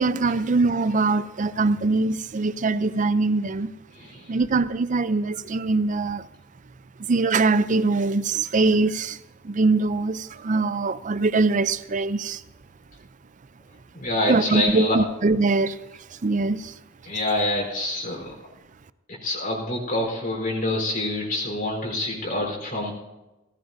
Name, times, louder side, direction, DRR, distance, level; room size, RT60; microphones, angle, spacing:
voice 1, 0.0-3.7 4.3-6.2 7.1-9.2 9.4-12.4 14.3-15.8 16.1-16.8, right 3 dB, 40° right, 0.5 m, -22 dB
voice 2, 4.0-4.3 13.9-15.0 17.0-18.3 19.2-22.9, left 1 dB, 45° left, 4.1 m, -26 dB
18.0 x 16.5 x 2.7 m
head